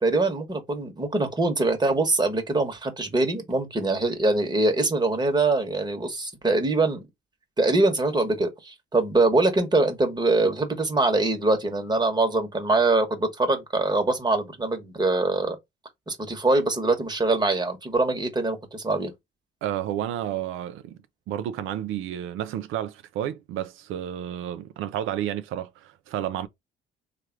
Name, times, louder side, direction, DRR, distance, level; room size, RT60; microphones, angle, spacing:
voice 1, 0.0-7.0 7.6-15.6 16.1-19.1, right 2 dB, 20° right, 1.2 m, -23 dB
voice 2, 19.6-21.0 21.3-26.5, right 11 dB, 90° right, 0.4 m, -31 dB
3.2 x 2.4 x 4.4 m
cardioid pair, 90°, 20 cm